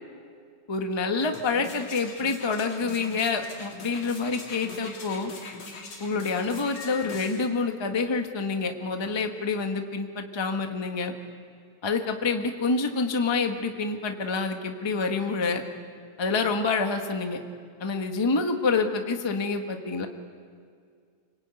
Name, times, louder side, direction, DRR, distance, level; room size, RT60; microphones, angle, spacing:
voice 1, 0.7-5.3 6.0-11.1 11.8-15.6 16.2-17.4 17.8-20.1, left 4 dB, 30° left, 4 dB, 0.5 m, -27 dB
sound 1, 1.2-7.5 8.0-8.1, left 3 dB, 50° left, 3.9 m, -42 dB
Piano, 6.8-8.2, left 7 dB, 90° right, 5.6 m, -45 dB
30.0 x 21.0 x 9.1 m, 2.2 s
omnidirectional pair, 3.5 m